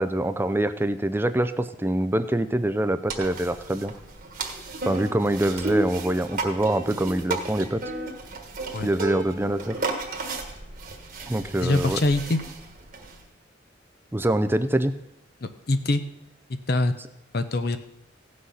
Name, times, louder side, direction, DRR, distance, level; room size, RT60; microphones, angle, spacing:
voice 1, 0.0-3.9 4.9-7.8 8.8-9.8 11.3-12.0 14.1-14.9, right 1 dB, 10° right, 11 dB, 0.4 m, -25 dB
sound 1, 3.1-13.2, right 3 dB, 45° right, 1.5 m, -33 dB
voice 2, 11.5-12.4 15.4-16.0 16.7-16.9 17.3-17.8, left 2 dB, 50° left, 9 dB, 0.7 m, -24 dB
16.5 x 6.3 x 5.6 m, 0.86 s
head